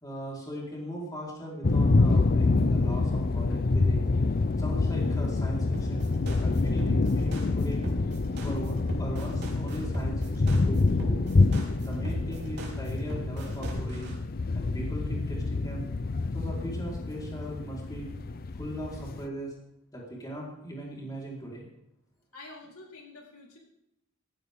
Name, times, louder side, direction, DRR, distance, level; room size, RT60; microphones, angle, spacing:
voice 1, 0.0-4.0 4.6-6.0 6.4-7.8 8.4-11.2 11.8-14.1 14.5-15.9 16.3-18.1 18.6-19.5 19.9-21.7, right 1 dB, 15° left, -3 dB, 4.3 m, -39 dB
sound 1, 1.6-19.3, left 3 dB, 45° left, 0.5 m, -27 dB
sound 2, 5.7-14.1, right 1 dB, 50° right, 3.7 m, -37 dB
voice 2, 22.3-23.6, left 2 dB, 85° left, -1 dB, 3.9 m, -47 dB
16.0 x 15.0 x 3.7 m, 0.82 s
head